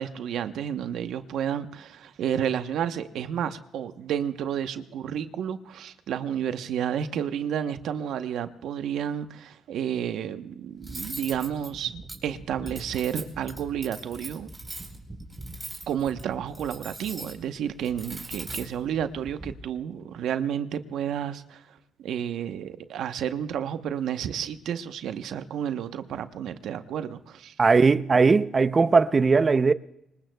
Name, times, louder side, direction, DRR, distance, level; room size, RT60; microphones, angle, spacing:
voice 1, 0.0-14.5 15.9-27.5, right 9 dB, 75° right, 1.0 m, -31 dB
Cutlery silverware, 10.8-19.5, right 2 dB, 15° right, 4.2 m, -41 dB
voice 2, 27.6-29.7, right 4 dB, 35° right, 0.6 m, -19 dB
25.5 x 21.0 x 2.3 m
cardioid pair, 90°, 0 cm